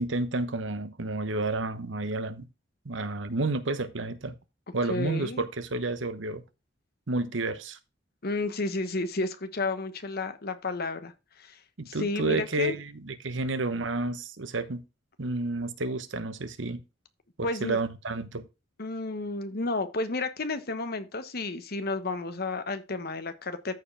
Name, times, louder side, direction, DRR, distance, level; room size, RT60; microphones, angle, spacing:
voice 1, 0.0-2.5 2.8-4.3 4.7-6.4 7.1-7.8 11.8-14.8 15.2-16.8 17.4-18.4, right 2 dB, 75° right, 1.0 m, -30 dB
voice 2, 4.7-5.4 8.2-11.1 11.4-11.6 11.9-12.8 17.4-17.8 18.8-23.7, left 2 dB, 55° left, 1.2 m, -32 dB
13.5 x 4.8 x 3.4 m
head